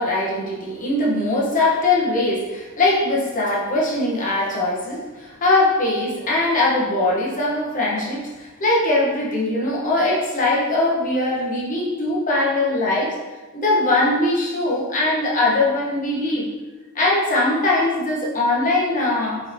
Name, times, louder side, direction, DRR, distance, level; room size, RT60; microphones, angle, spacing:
voice 1, 0.0-13.1 13.5-16.5 16.9-19.4, left 2 dB, 40° left, -5 dB, 0.9 m, -21 dB
4.1 x 2.7 x 3.2 m, 1.2 s
head